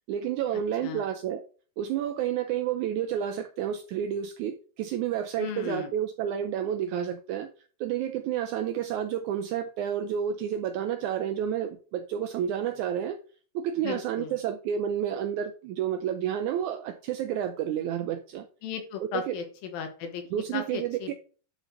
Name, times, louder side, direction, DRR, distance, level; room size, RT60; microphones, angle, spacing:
voice 1, 0.1-1.4 1.8-7.5 7.8-13.2 13.5-18.5 19.1-19.3 20.3-21.1, right 9 dB, 85° right, 1.7 m, -30 dB
voice 2, 5.4-5.9 13.8-14.4 18.6-20.2 20.5-21.1, left 7 dB, 80° left, 3.0 m, -36 dB
11.0 x 4.5 x 3.9 m
omnidirectional pair, 4.1 m